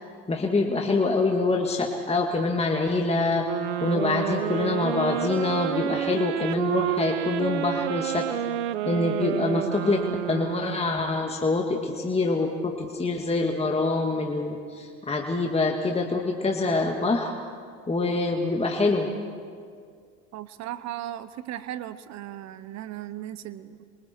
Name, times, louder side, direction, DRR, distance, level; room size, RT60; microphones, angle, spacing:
voice 1, 0.3-3.5 3.8-8.3 8.9-17.3 17.9-19.1, left 3 dB, 20° left, 1 dB, 2.0 m, -25 dB
sound 1, 3.4-11.1, right 12 dB, 85° right, 0.9 m, -29 dB
voice 2, 20.3-23.9, right 12 dB, 55° right, 15 dB, 1.0 m, -37 dB
28.5 x 24.0 x 4.5 m, 2.1 s
hypercardioid pair, 80°, 33 cm